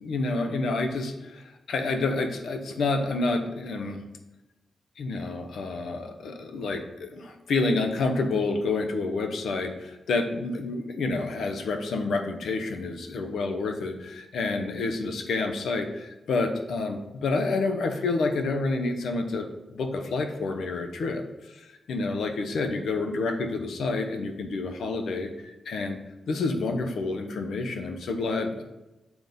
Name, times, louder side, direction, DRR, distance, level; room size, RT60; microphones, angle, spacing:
voice 1, 0.0-4.0 5.0-21.2 21.5-25.3 25.6-26.0 26.3-28.6, left 3 dB, 85° left, 5 dB, 0.9 m, -29 dB
7.2 x 3.9 x 5.2 m, 1.0 s
wide cardioid pair, 105°, 0 cm